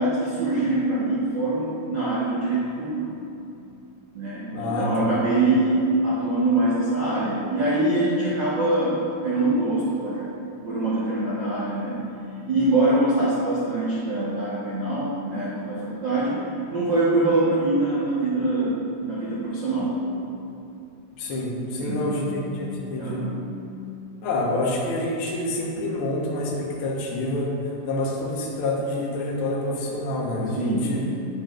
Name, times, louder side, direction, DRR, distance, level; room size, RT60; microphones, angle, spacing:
voice 1, 0.0-3.2 4.1-9.0 9.2-10.3 10.6-12.0 12.5-16.4 16.7-20.0 21.8-22.2 23.0-23.4 30.5-31.0, right 2 dB, 75° right, -9 dB, 1.0 m, -24 dB
voice 2, 4.5-5.1 21.2-23.2 24.2-27.5 27.8-31.0, left 2 dB, 75° left, -4 dB, 1.2 m, -27 dB
10.5 x 9.4 x 2.6 m, 2.7 s
omnidirectional pair, 4.5 m